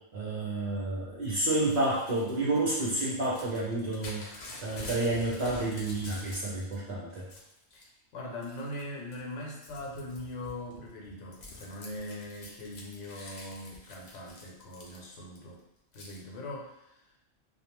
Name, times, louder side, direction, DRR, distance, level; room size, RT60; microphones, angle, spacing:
voice 1, 0.1-7.3, right 2 dB, 55° right, -5 dB, 0.6 m, -30 dB
Crumpling crinkling / Tearing, 1.5-6.8 7.1-7.9 8.4-8.8 9.1-15.4 15.9-16.2, left 2 dB, 55° left, 0.5 m, -47 dB
voice 2, 8.1-15.6 15.9-17.0, left 1 dB, 70° left, -1 dB, 1.0 m, -41 dB
2.4 x 2.2 x 3.0 m, 0.85 s
omnidirectional pair, 1.3 m